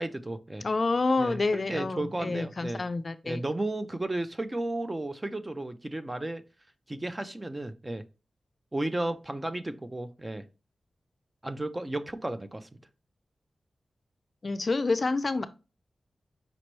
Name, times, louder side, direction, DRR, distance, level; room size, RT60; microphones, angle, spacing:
voice 1, 0.0-0.6 1.2-2.8 3.2-6.4 6.9-8.0 8.7-10.4 11.4-12.7, right 1 dB, 20° right, 0.4 m, -33 dB
voice 2, 0.6-3.4 14.4-15.5, left 3 dB, 45° left, 0.4 m, -28 dB
5.1 x 3.0 x 3.0 m
wide cardioid pair, 110°, 0 cm